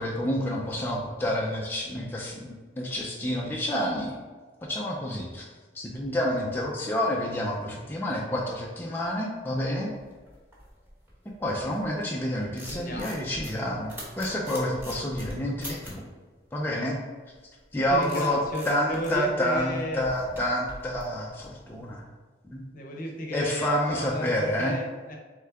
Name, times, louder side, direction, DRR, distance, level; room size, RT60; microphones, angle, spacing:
voice 1, 0.0-4.2 4.6-5.4 5.7-9.9 11.4-16.1 16.5-17.0 17.7-18.4 18.7-22.0 22.5-22.6 23.3-24.8, equal, 10° left, -3 dB, 0.4 m, -29 dB
sound 1, 9.6-12.0 12.3-16.1 17.3-21.8, equal, 10° right, 1.0 m, -44 dB
voice 2, 12.7-13.2 17.9-20.0 22.7-25.2, equal, 50° left, 1 dB, 0.7 m, -34 dB
3.6 x 3.4 x 3.4 m, 1.4 s
head